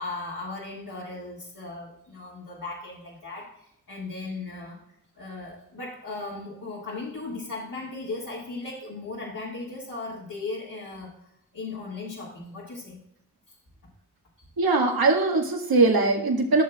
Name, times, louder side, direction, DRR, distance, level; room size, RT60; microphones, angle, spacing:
voice 1, 0.0-4.8 5.2-11.1 11.5-13.0 13.5-13.6 14.4-14.5, left 3 dB, 55° left, -6 dB, 2.3 m, -37 dB
voice 2, 14.6-16.6, right 3 dB, 65° right, 1 dB, 1.8 m, -21 dB
14.0 x 6.6 x 2.4 m, 0.77 s
cardioid pair, 45°, 39 cm